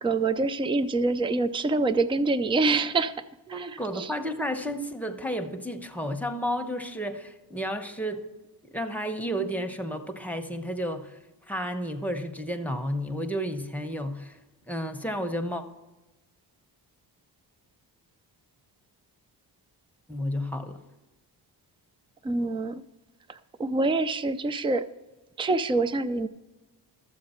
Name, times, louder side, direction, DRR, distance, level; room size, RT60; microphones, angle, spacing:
voice 1, 0.0-3.1 3.5-4.1 22.2-22.8 23.3-24.9 25.4-26.3, right 3 dB, 15° right, 14 dB, 0.3 m, -26 dB
voice 2, 3.5-8.2 8.6-11.2 11.5-14.4 14.7-15.6 20.1-20.8, equal, 5° left, 5 dB, 0.9 m, -32 dB
13.0 x 7.5 x 4.3 m, 1.1 s
cardioid pair, 95°, 43 cm